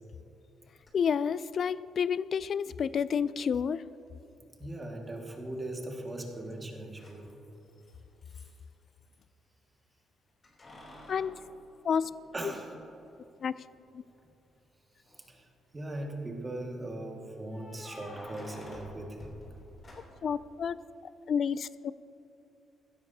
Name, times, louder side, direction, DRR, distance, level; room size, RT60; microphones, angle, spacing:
Keys jangling, 0.8-0.9 2.8-2.9 5.2-5.7 6.0-9.2 10.4-12.6 13.0-13.1 14.9-15.5 17.4-20.4, left 1 dB, 35° left, 3.0 m, -51 dB
voice 1, 0.9-3.8 11.1-11.4 11.8-12.1 12.4-12.5 13.4-13.5 13.9-14.0 20.2-20.8 21.3-21.9, left 7 dB, 55° left, 18 dB, 0.3 m, -29 dB
voice 2, 4.6-7.3 11.9-12.0 12.3-12.7 15.0-19.4, right 1 dB, 25° right, 1 dB, 1.8 m, -40 dB
16.0 x 13.0 x 2.8 m, 3.0 s
cardioid pair, 90°, 0 cm